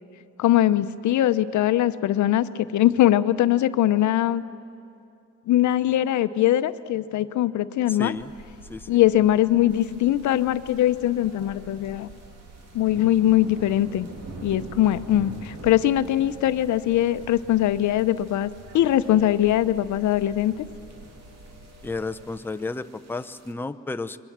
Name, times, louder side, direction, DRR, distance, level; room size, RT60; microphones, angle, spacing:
voice 1, 0.4-4.4 5.5-8.1 8.9-12.1 12.7-14.1 14.4-20.6, left 13 dB, 70° left, 13 dB, 0.7 m, -21 dB
voice 2, 7.9-8.3 8.7-9.0 21.8-24.2, left 3 dB, 5° left, 10 dB, 0.6 m, -32 dB
sound 1, 8.1-22.3, right 2 dB, 80° right, 5.0 m, -48 dB
sound 2, 9.7-23.5, right 2 dB, 60° right, 3.1 m, -46 dB
26.5 x 22.5 x 7.4 m, 2.7 s
cardioid pair, 90°, 30 cm